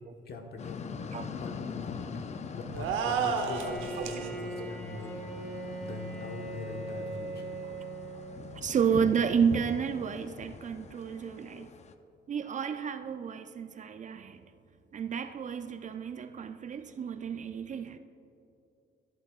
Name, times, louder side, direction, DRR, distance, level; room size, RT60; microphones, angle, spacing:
voice 1, 0.3-0.8 1.3-2.0 2.5-2.9 3.2-5.1 5.8-7.5, left 3 dB, 55° left, 3 dB, 1.1 m, -42 dB
sound 1, 0.6-11.9, left 5 dB, 35° left, 0.5 m, -43 dB
sound 2, 2.7-4.3, right 6 dB, 85° right, 0.8 m, -31 dB
voice 2, 3.0-3.3 3.7-4.7 8.5-11.7 12.3-14.4 14.9-18.0, right 7 dB, 40° right, 10 dB, 0.4 m, -32 dB
Bowed string instrument, 3.3-8.7, right 2 dB, ahead, 1.5 m, -40 dB
13.5 x 8.2 x 2.4 m, 2.8 s
cardioid pair, 90°, 20 cm